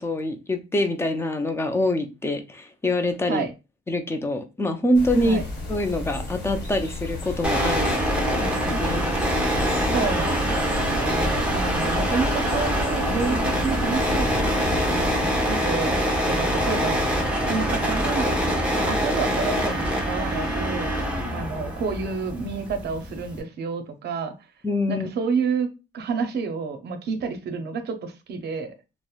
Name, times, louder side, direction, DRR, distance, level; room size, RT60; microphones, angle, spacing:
voice 1, 0.0-3.5 3.9-5.4 5.7-9.0 24.6-25.1, left 1 dB, 10° left, 7 dB, 0.4 m, -25 dB
sound 1, 4.9-15.2, left 2 dB, 55° left, 1.0 m, -33 dB
sound 2, 7.4-23.4, equal, 5° right, 0.9 m, -24 dB
voice 2, 9.9-16.0 16.2-17.0 17.5-18.4 18.7-20.9 21.3-24.3 24.9-25.7 25.9-28.7, right 5 dB, 60° right, 8 dB, 0.6 m, -29 dB
2.9 x 2.0 x 2.3 m, 0.28 s
cardioid pair, 90°, 20 cm